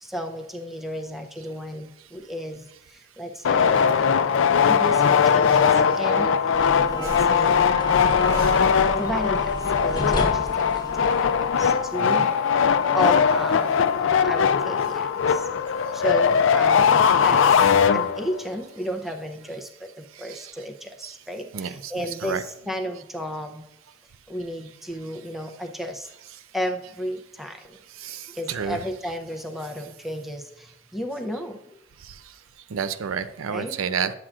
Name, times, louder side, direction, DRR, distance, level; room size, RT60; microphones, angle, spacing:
voice 1, 0.0-4.3 4.7-8.4 9.0-11.3 11.6-12.2 12.9-15.5 15.9-23.7 24.3-26.1 26.5-27.8 28.3-31.6 33.5-33.8, equal, ahead, 4 dB, 0.5 m, -33 dB
sound 1, 3.4-18.4, left 6 dB, 70° left, 0.4 m, -20 dB
sound 2, 6.5-11.9, left 1 dB, 20° left, 0.9 m, -32 dB
voice 2, 12.0-12.3 20.3-20.5 21.0-21.1 21.5-22.4 28.0-28.9 32.7-34.1, right 6 dB, 85° right, 13 dB, 0.4 m, -30 dB
10.0 x 7.5 x 2.4 m, 0.81 s
head